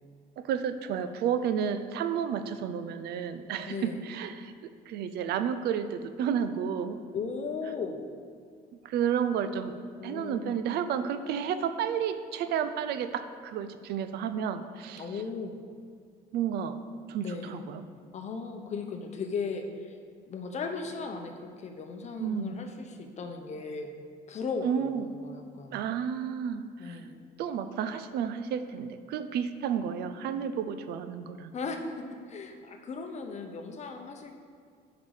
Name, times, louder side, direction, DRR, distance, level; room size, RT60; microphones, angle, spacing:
voice 1, 0.4-7.0 8.8-9.8 10.0-15.2 16.3-16.8 17.1-17.8 22.2-22.5 24.6-25.1 25.7-27.0 27.4-31.5, right 8 dB, 75° right, 10 dB, 0.5 m, -31 dB
voice 2, 3.7-4.0 7.1-8.0 10.0-10.6 15.0-15.6 17.2-17.6 18.1-20.0 20.3-23.9 24.3-25.8 26.8-27.2 31.5-31.8 32.3-34.3, left 4 dB, 45° left, 5 dB, 0.9 m, -37 dB
8.3 x 5.2 x 4.8 m, 2.2 s
cardioid pair, 110°, 17 cm